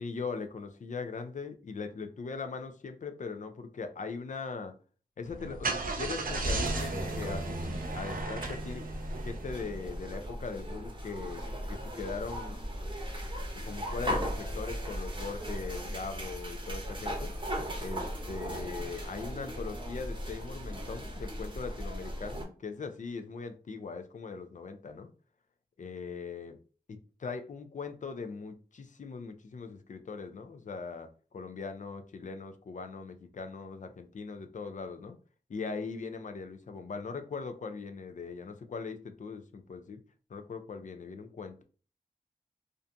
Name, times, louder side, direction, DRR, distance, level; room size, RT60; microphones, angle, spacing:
voice 1, 0.0-4.8 5.2-8.9 9.2-11.4 11.7-12.6 13.6-17.3 17.8-25.1 25.8-26.6 26.9-35.2 35.5-40.0 40.3-41.6, left 4 dB, 55° left, 0.4 m, -40 dB
Car / Engine starting, 5.2-9.9, right 3 dB, 65° right, 0.5 m, -35 dB
sound 1, 6.2-22.4, equal, 30° right, 0.7 m, -37 dB
2.5 x 2.2 x 2.5 m
cardioid pair, 45°, 16 cm